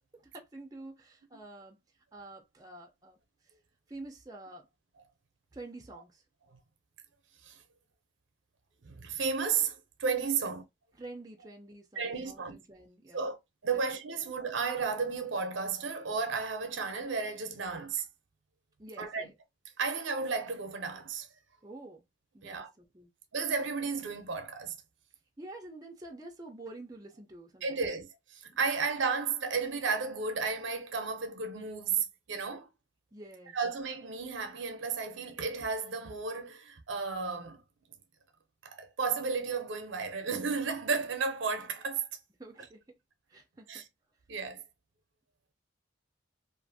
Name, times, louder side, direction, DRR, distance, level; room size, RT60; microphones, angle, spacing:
voice 1, 0.1-1.8 2.1-3.2 3.9-4.7 5.5-6.2 10.9-13.3 13.7-13.8 18.8-19.4 21.6-22.0 22.3-23.1 25.4-27.9 33.1-33.5 42.4-42.8 43.3-43.8, right 2 dB, 20° right, 0.5 m, -48 dB
voice 2, 8.8-10.6 12.0-12.6 13.1-13.4 13.6-18.0 19.0-19.3 19.8-21.3 22.4-22.7 23.3-24.7 27.6-32.7 33.5-37.6 38.6-42.1 43.7-43.8 44.3-44.6, right 5 dB, 75° right, 0.6 m, -33 dB
2.5 x 2.5 x 2.6 m
head